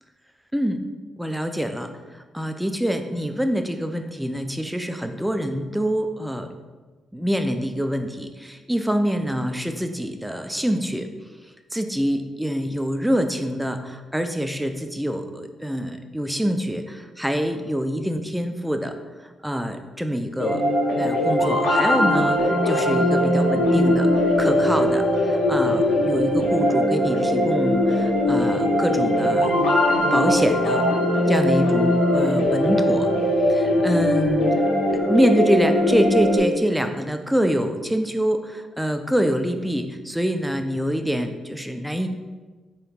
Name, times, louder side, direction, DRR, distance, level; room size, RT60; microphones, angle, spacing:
voice 1, 1.2-6.5 7.1-11.1 11.7-19.0 19.2-20.6 21.0-24.1 24.4-29.5 30.1-30.8 31.3-33.1 33.5-34.5 34.9-42.1, equal, 5° right, 6 dB, 0.3 m, -25 dB
sound 1, 20.4-36.4, left 1 dB, 85° left, 0.7 m, -20 dB
3.7 x 2.8 x 3.5 m, 1.3 s
supercardioid pair, 65°, 0 cm